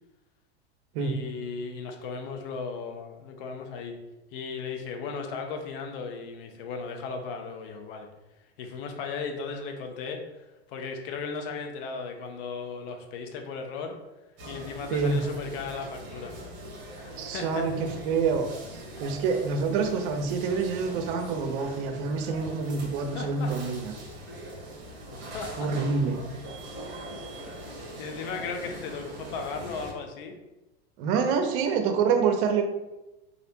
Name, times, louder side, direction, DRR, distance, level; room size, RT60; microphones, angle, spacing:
voice 1, 1.0-3.9 4.3-8.1 8.6-14.0 14.5-16.3 17.0-17.6 23.1-23.5 25.3-25.7 28.0-30.4, left 5 dB, 60° left, 4 dB, 0.7 m, -36 dB
sound 1, 14.4-29.9, right 1 dB, 35° right, 1.2 m, -42 dB
voice 2, 14.9-15.2 17.2-23.9 25.6-26.2 31.0-32.6, right 5 dB, 60° right, 6 dB, 0.6 m, -27 dB
3.2 x 2.6 x 2.8 m, 0.99 s
hypercardioid pair, 100°, 31 cm